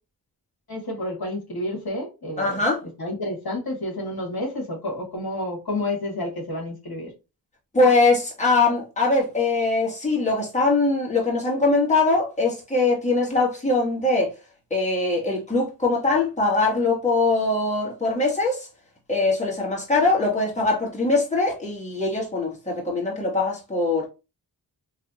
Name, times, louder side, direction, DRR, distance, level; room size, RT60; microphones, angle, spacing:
voice 1, 0.7-2.6 3.0-7.1, left 1 dB, 55° left, 1.6 m, -30 dB
voice 2, 2.4-2.8 7.7-14.3 14.7-18.7 19.1-24.1, left 3 dB, 15° left, 1.7 m, -22 dB
3.3 x 3.1 x 2.5 m
cardioid pair, 45°, 45 cm